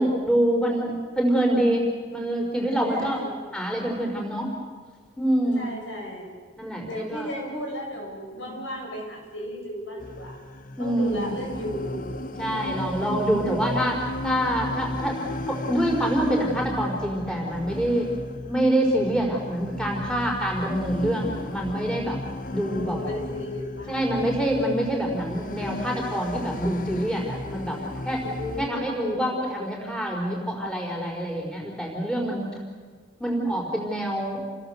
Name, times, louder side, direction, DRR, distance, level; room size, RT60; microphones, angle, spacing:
voice 1, 0.0-3.2 3.5-4.5 5.2-5.7 6.6-7.3 8.3-8.6 10.8-11.3 12.4-13.9 14.2-15.2 15.5-18.1 18.4-22.2 22.5-23.0 23.9-28.2 28.6-32.5 33.2-34.4, right 1 dB, 5° left, -1 dB, 4.7 m, -26 dB
voice 2, 2.8-3.4 5.5-6.3 6.9-10.4 10.8-12.7 13.4-13.6 22.6-24.0 28.2-29.2, equal, 85° left, 0 dB, 7.9 m, -35 dB
sound 1, 10.0-28.7, left 1 dB, 45° left, 1.0 m, -35 dB
29.0 x 20.5 x 8.0 m, 1.5 s
head